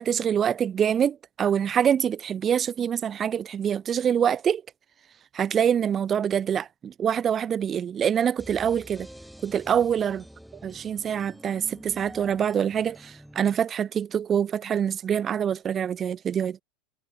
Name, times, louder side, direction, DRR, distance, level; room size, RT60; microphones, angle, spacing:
voice 1, 0.0-4.6 5.3-9.1 9.4-10.2 10.6-16.6, right 8 dB, 30° right, 0.4 m, -25 dB
sound 1, 8.4-13.6, equal, ahead, 4.6 m, -47 dB
hypercardioid pair, 80°, 0 cm